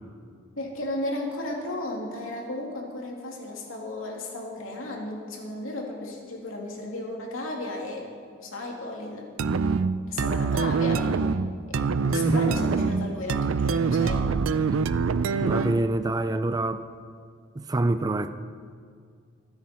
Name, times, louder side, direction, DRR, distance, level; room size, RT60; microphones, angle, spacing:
voice 1, 0.6-8.1 8.4-9.3 10.1-11.2 11.7-14.3, left 2 dB, 85° left, -1 dB, 2.6 m, -34 dB
sound 1, 9.4-15.9, right 5 dB, 85° right, 0.5 m, -25 dB
voice 2, 12.1-12.5 15.4-16.8 17.6-18.3, right 2 dB, 20° right, 10 dB, 0.4 m, -26 dB
23.0 x 9.7 x 4.4 m, 2.1 s
head